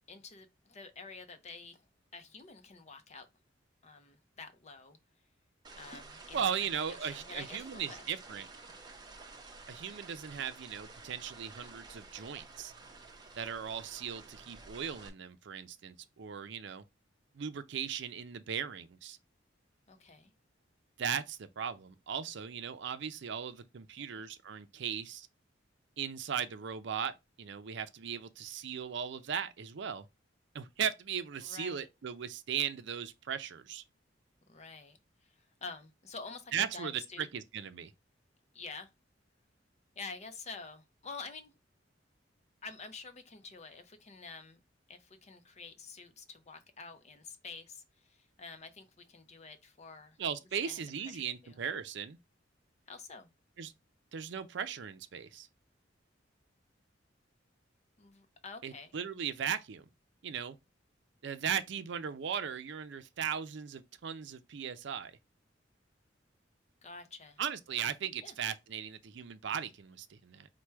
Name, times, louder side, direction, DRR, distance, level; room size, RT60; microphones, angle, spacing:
voice 1, 0.1-1.8 2.1-3.3 3.8-5.0 5.8-8.0 8.3-8.4 19.9-20.3 24.0-24.2 31.4-31.9 34.5-35.0 35.2-37.3 38.5-38.9 40.0-41.5 42.6-44.6 44.9-50.2 50.6-51.6 52.9-53.3 58.0-58.9 66.8-67.4 68.2-68.3, left 4 dB, 35° left, 0.6 m, -48 dB
sound 1, 5.6-15.1, right 3 dB, 25° right, 0.8 m, -51 dB
voice 2, 6.3-8.5 9.7-12.7 13.4-16.8 17.3-19.2 21.0-25.3 26.0-30.1 30.5-33.8 36.5-37.9 50.2-52.2 53.6-53.7 54.1-55.5 58.6-59.8 60.2-60.6 61.2-65.1 67.4-70.5, right 7 dB, 65° right, 0.5 m, -37 dB
4.7 x 2.2 x 4.4 m
head